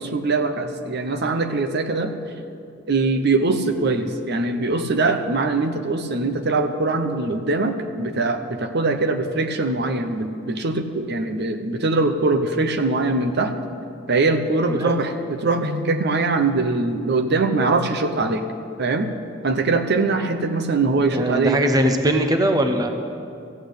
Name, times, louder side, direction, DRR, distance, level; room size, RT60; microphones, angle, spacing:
voice 1, 0.0-2.1 2.9-13.5 14.1-18.5 18.8-19.1 19.4-21.6, right 3 dB, 55° right, 6 dB, 0.8 m, -22 dB
voice 2, 14.7-15.0 21.1-22.9, right 1 dB, 20° right, 5 dB, 0.8 m, -20 dB
15.0 x 8.5 x 8.2 m, 2.5 s
head